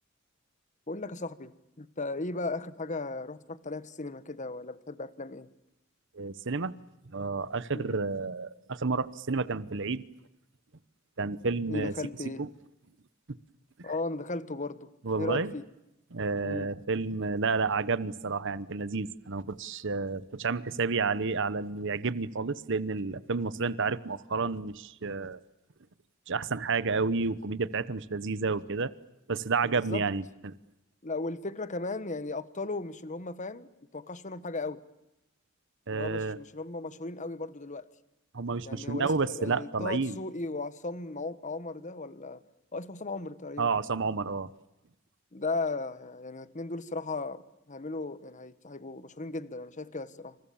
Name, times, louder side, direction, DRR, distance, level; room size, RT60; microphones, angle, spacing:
voice 1, 0.9-5.5 7.7-8.0 11.7-12.5 13.8-14.9 15.2-15.6 16.4-16.7 29.6-30.1 31.0-34.8 35.9-37.9 38.6-42.4 42.7-43.7 45.3-47.4 47.7-50.4, left 3 dB, 35° left, 1.4 m, -36 dB
voice 2, 6.1-6.7 7.1-10.0 11.2-11.9 12.4-12.5 15.0-15.5 16.1-25.4 26.3-28.9 29.3-30.5 35.9-36.4 38.3-40.2 43.6-44.5, right 4 dB, 60° right, 1.0 m, -30 dB
27.5 x 27.0 x 7.2 m
head